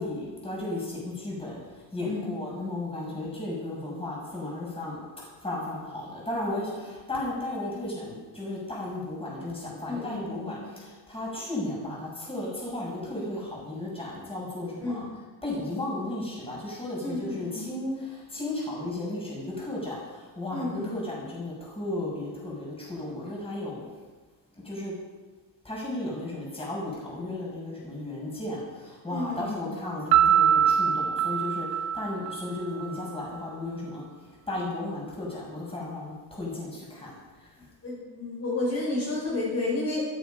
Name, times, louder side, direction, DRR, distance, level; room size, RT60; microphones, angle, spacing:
voice 1, 0.0-1.6 1.9-5.0 5.4-10.6 11.1-15.0 15.4-17.9 18.3-20.0 20.4-23.8 24.6-24.9 25.6-28.6 29.0-31.7 31.9-34.0 34.5-37.1, left 2 dB, 15° left, -4 dB, 6.8 m, -34 dB
voice 2, 9.9-10.8 14.8-15.1 17.0-17.7 20.5-20.9 29.1-29.8 37.8-40.0, left 2 dB, 35° left, -5 dB, 5.8 m, -32 dB
Piano, 30.1-32.9, right 9 dB, 65° right, 1.4 m, -23 dB
16.0 x 14.0 x 5.3 m, 1.3 s
cardioid pair, 145°, 40 cm